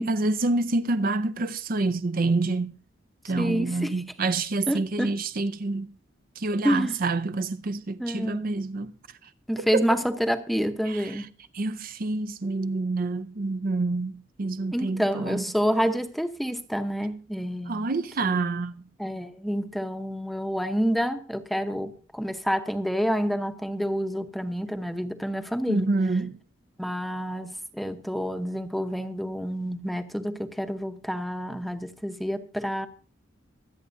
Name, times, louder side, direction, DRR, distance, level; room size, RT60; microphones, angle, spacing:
voice 1, 0.0-2.7 3.2-5.9 6.4-8.9 9.6-9.8 10.9-11.0 11.5-15.5 17.7-18.8 25.7-26.3, right 3 dB, 50° right, 0.6 m, -27 dB
voice 2, 3.4-4.0 4.7-5.1 6.6-7.0 8.0-8.5 9.5-11.3 14.7-17.9 18.2-18.4 19.0-26.0 26.8-32.9, equal, ahead, 0.8 m, -28 dB
25.0 x 8.5 x 2.6 m
head